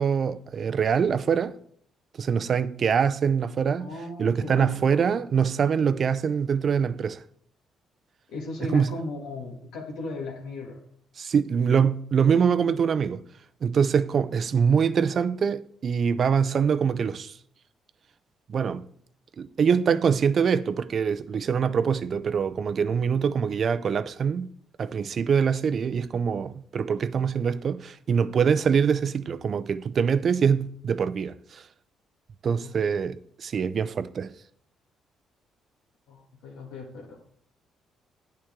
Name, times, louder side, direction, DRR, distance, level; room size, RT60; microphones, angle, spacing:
voice 1, 0.0-1.5 2.2-3.9 4.2-7.2 8.6-9.0 11.2-13.2 13.6-17.4 18.5-18.8 19.4-24.5 24.8-31.7 32.4-34.3, right 6 dB, 55° right, 0.5 m, -24 dB
voice 2, 3.6-5.1 8.3-10.8 32.6-32.7 36.1-37.2, left 2 dB, 80° left, 2.0 m, -37 dB
9.6 x 8.8 x 3.7 m
supercardioid pair, 65°, 0 cm